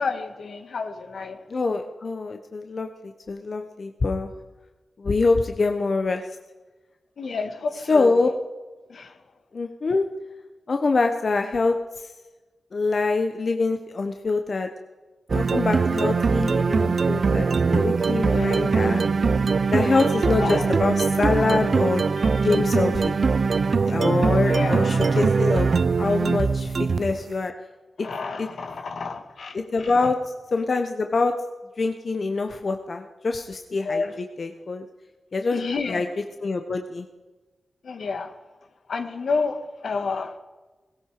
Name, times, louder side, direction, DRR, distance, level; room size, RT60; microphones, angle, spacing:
voice 1, 0.0-1.4 7.2-8.2 8.9-9.1 18.3-18.8 19.6-19.7 20.4-20.7 22.2-22.5 23.9-24.0 24.5-25.3 28.0-30.1 33.8-34.1 35.5-36.0 37.8-38.3 38.9-40.4, left 4 dB, 75° left, 6 dB, 1.6 m, -30 dB
voice 2, 1.5-4.3 5.0-6.2 7.9-8.3 9.5-10.1 10.7-12.1 12.7-14.7 15.3-19.0 19.7-22.1 22.4-23.2 23.9-25.7 26.0-27.5 28.0-28.1 28.4-28.5 29.5-30.2 30.5-31.3 31.8-34.0 34.4-34.9 35.3-36.1 36.4-37.1, left 3 dB, 55° left, 5 dB, 1.1 m, -25 dB
sound 1, 15.3-27.2, right 4 dB, 60° right, 0.6 m, -22 dB
17.0 x 17.0 x 5.0 m, 1.2 s
cardioid pair, 60°, 0 cm